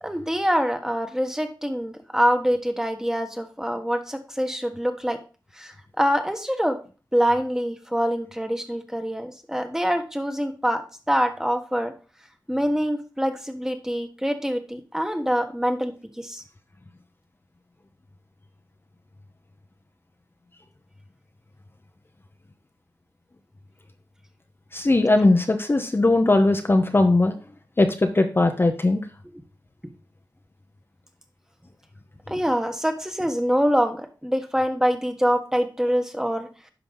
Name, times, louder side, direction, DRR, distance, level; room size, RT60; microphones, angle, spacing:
voice 1, 0.0-5.2 5.5-6.8 7.1-11.9 12.5-16.4 32.3-36.5, equal, 5° right, 6 dB, 1.4 m, -25 dB
voice 2, 24.7-27.3 27.8-29.0, left 2 dB, 30° left, 5 dB, 0.8 m, -19 dB
10.5 x 5.8 x 3.9 m, 0.36 s
wide cardioid pair, 70°, 8 cm